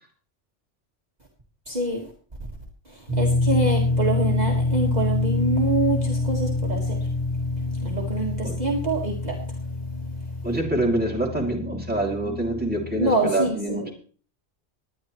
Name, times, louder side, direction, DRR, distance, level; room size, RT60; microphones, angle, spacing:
voice 1, 1.7-2.1 2.9-9.7 10.2-10.3 13.0-13.9, right 2 dB, 35° right, -1 dB, 1.8 m, -26 dB
sound 1, 3.1-13.1, left 2 dB, 65° left, 3.0 m, -26 dB
voice 2, 10.4-13.9, right 1 dB, 10° right, -1 dB, 2.6 m, -26 dB
19.0 x 10.5 x 3.1 m, 0.41 s
omnidirectional pair, 1.2 m